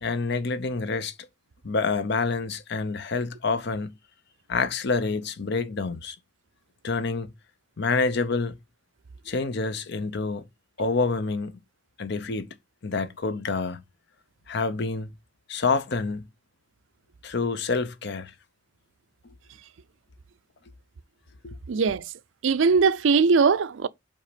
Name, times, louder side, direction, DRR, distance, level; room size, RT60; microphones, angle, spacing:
voice 1, 0.0-1.1 1.6-3.9 4.5-6.2 6.8-7.3 7.8-8.6 9.3-10.4 10.8-11.6 12.0-12.5 12.8-13.8 14.5-15.1 15.5-16.2 17.2-18.3 21.4-21.6, left 4 dB, 65° left, 0.7 m, -27 dB
voice 2, 21.7-22.1 22.4-23.9, right 5 dB, 80° right, 0.5 m, -20 dB
5.4 x 4.3 x 5.0 m
head